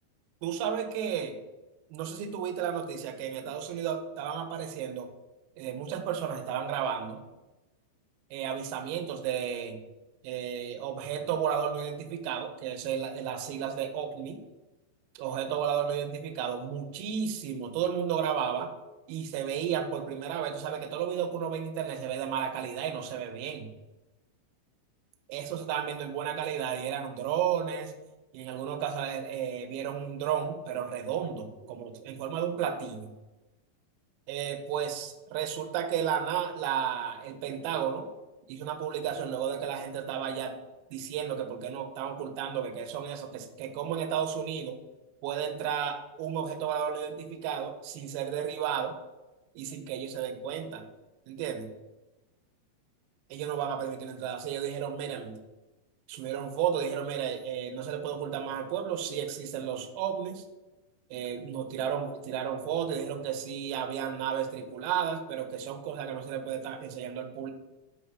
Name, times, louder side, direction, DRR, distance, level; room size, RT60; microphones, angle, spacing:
voice 1, 0.4-1.4 1.9-5.1 5.6-7.2 8.3-9.8 10.2-14.4 15.2-18.7 19.1-23.7 25.3-28.0 28.3-33.1 34.3-38.1 38.5-40.6 40.9-44.8 45.2-48.9 49.6-50.9 51.3-51.7 53.3-55.4 56.1-60.4 61.1-67.5, right 8 dB, 85° right, 7 dB, 2.2 m, -33 dB
7.8 x 2.7 x 4.6 m, 1.1 s
omnidirectional pair, 4.8 m